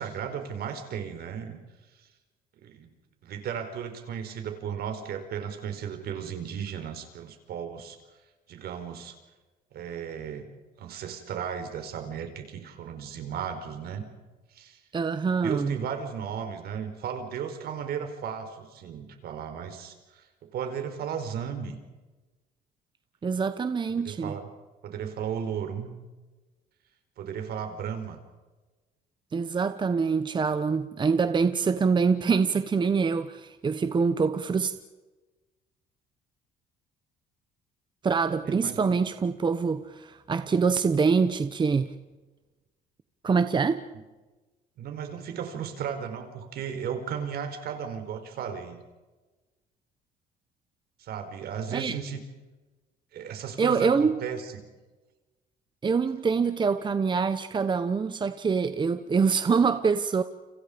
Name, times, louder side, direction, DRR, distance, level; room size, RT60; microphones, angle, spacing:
voice 1, 0.0-1.6 1.9-2.1 2.6-2.9 3.2-8.0 8.5-9.2 9.7-10.5 10.8-14.1 14.5-14.8 15.4-21.8 23.9-24.5 24.8-25.9 27.2-28.2 38.4-39.0 44.8-48.8 51.0-52.2 53.1-54.6, right 7 dB, 65° right, 4.7 m, -35 dB
voice 2, 14.9-15.8 23.2-24.4 29.3-34.7 38.0-41.9 43.2-43.8 51.7-52.0 53.6-54.2 55.8-60.2, right 5 dB, 25° right, 1.1 m, -25 dB
30.0 x 27.0 x 5.2 m
cardioid pair, 110°, 17 cm